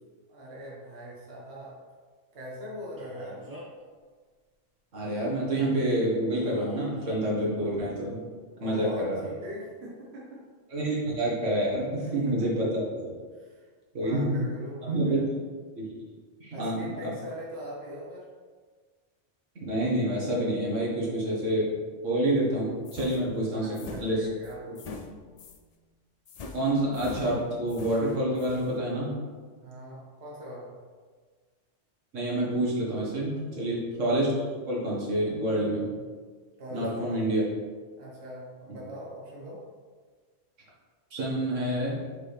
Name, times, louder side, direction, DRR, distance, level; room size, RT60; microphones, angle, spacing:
voice 1, 0.3-1.8 2.3-3.4 8.5-10.5 12.0-12.7 13.3-15.3 16.5-18.3 23.5-25.0 29.6-30.8 33.5-33.8 36.6-37.5 38.0-39.6, equal, 60° right, -5 dB, 1.5 m, -42 dB
Male speech man speaking, 3.0-3.9 6.3-7.2, equal, 15° right, 1.4 m, -45 dB
voice 2, 4.9-8.2 8.6-9.2 10.7-12.8 13.9-14.4 14.9-15.2 15.8-15.9 16.4-17.1 19.6-21.7 22.0-24.3 26.5-29.1 32.1-34.3 34.7-35.9 36.7-37.4 41.1-41.9, right 1 dB, 90° right, -5 dB, 1.9 m, -28 dB
sound 1, 22.9-25.7 26.3-28.7, left 3 dB, 60° left, 0.4 m, -44 dB
6.9 x 4.8 x 3.4 m, 1.5 s
omnidirectional pair, 1.2 m